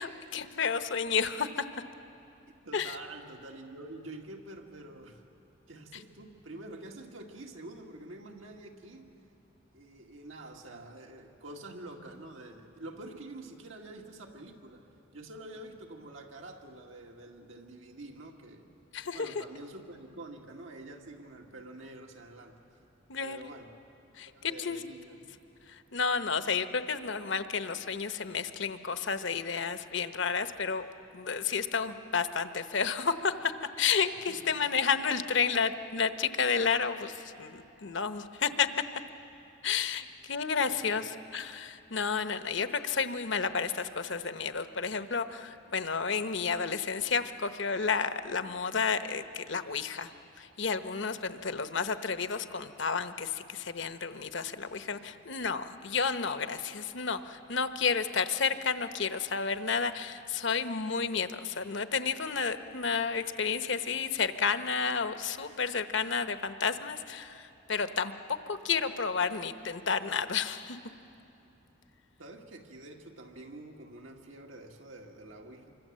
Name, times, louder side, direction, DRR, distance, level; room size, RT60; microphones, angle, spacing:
voice 1, 0.0-1.6 2.7-3.0 18.9-19.4 23.1-23.4 24.2-24.8 25.7-30.9 31.1-33.5 33.8-38.7 39.6-50.1 50.4-68.1 68.5-70.8, left 5 dB, 70° left, 10 dB, 1.0 m, -31 dB
voice 2, 2.6-5.3 5.7-9.1 9.7-14.9 15.1-18.7 19.1-22.6 23.2-23.8 24.3-25.3 34.3-34.6 40.6-41.2 72.2-75.8, right 2 dB, 90° right, 1 dB, 2.2 m, -47 dB
26.5 x 24.5 x 7.6 m, 2.8 s
head